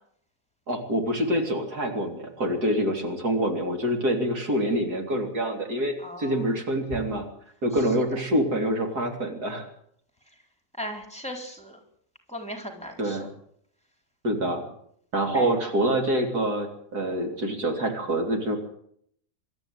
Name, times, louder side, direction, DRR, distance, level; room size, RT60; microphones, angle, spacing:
voice 1, 0.7-7.2 7.6-9.7 13.0-13.3 14.2-14.7 15.1-18.6, right 1 dB, 85° right, 4 dB, 4.0 m, -26 dB
voice 2, 6.0-6.4 10.8-11.8 12.3-13.3 15.3-15.5, equal, 5° left, 4 dB, 4.0 m, -37 dB
25.0 x 13.0 x 9.2 m, 0.67 s
omnidirectional pair, 1.6 m